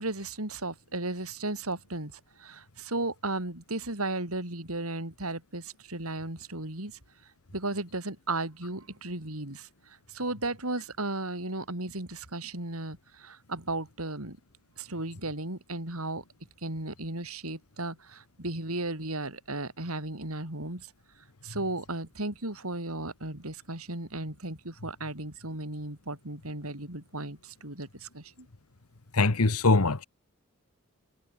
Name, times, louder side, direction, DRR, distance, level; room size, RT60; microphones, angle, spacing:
voice 1, 0.0-7.0 7.5-14.4 14.8-16.2 16.6-20.9 21.4-28.5, right 2 dB, 75° right, 4.9 m, -35 dB
voice 2, 29.1-30.0, left 3 dB, 80° left, 1.3 m, -22 dB
head